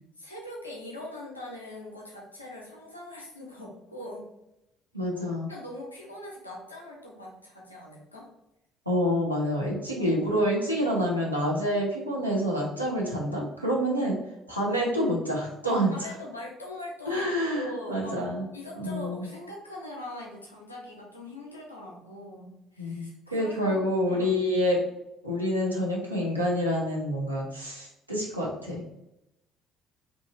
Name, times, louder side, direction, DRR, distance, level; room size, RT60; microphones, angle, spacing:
voice 1, 0.2-4.3 5.5-8.3 10.0-10.3 13.9-14.1 15.6-18.2 18.5-24.4, left 1 dB, 85° left, -3 dB, 0.5 m, -41 dB
voice 2, 4.9-5.5 8.9-14.1 14.5-15.9 17.1-18.5 18.8-19.2 22.8-24.8 25.2-28.8, equal, 90° right, -4 dB, 0.5 m, -27 dB
2.8 x 2.5 x 2.4 m, 0.88 s
figure-of-eight pair, 50°, 0 cm